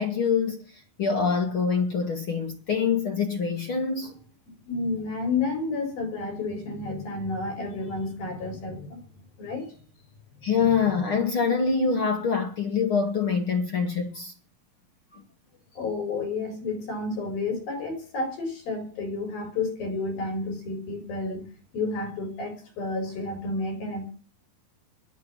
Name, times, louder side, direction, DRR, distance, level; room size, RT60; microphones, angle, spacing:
voice 1, 0.0-4.1 10.4-14.3 15.1-15.2, left 5 dB, 45° left, 2.1 m, -25 dB
voice 2, 4.7-9.0 9.4-9.8 10.5-10.8 15.8-21.4 21.7-24.1, left 3 dB, 85° left, 6.9 m, -31 dB
21.5 x 8.3 x 6.0 m
omnidirectional pair, 4.1 m